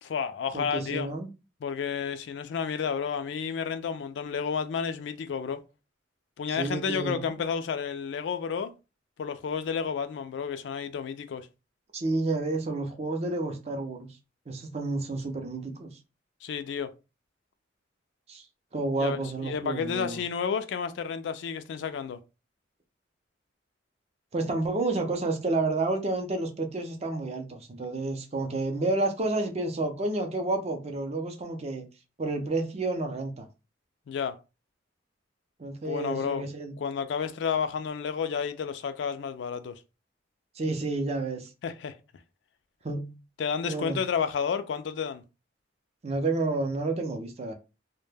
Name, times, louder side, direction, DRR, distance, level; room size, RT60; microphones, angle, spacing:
voice 1, 0.0-1.1 1.6-5.6 6.4-8.7 9.2-11.5 16.4-16.9 19.0-22.2 34.1-34.4 35.8-36.4 36.8-39.8 41.6-41.9 43.4-45.2, left 6 dB, 70° left, 0.3 m, -31 dB
voice 2, 0.5-1.3 6.5-7.3 11.9-14.1 14.5-16.0 18.3-18.4 18.7-20.2 24.3-31.8 32.2-33.5 35.6-36.7 40.5-41.5 42.8-43.2 43.7-44.0 46.0-47.5, right 2 dB, 35° right, 0.5 m, -30 dB
2.1 x 2.1 x 3.2 m
head